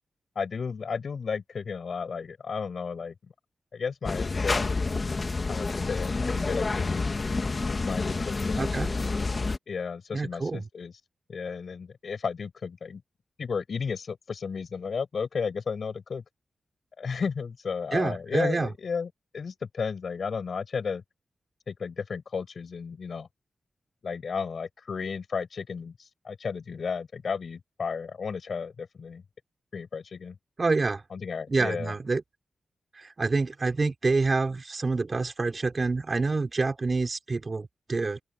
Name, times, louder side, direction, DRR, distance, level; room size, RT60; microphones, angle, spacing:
voice 1, 0.3-3.1 3.7-4.9 5.5-7.2 7.7-8.8 9.7-10.9 11.3-13.0 13.4-16.2 17.0-21.0 21.7-23.3 24.0-29.2 29.7-30.4 31.1-31.9, left 5 dB, 65° left, 6.5 m, -33 dB
sound 1, 4.0-9.6, left 3 dB, 35° left, 1.6 m, -28 dB
voice 2, 8.5-8.9 10.1-10.6 17.9-18.7 30.6-31.0 31.5-32.2 33.0-38.2, right 3 dB, 40° right, 5.4 m, -27 dB
open air
wide cardioid pair, 110°, 0 cm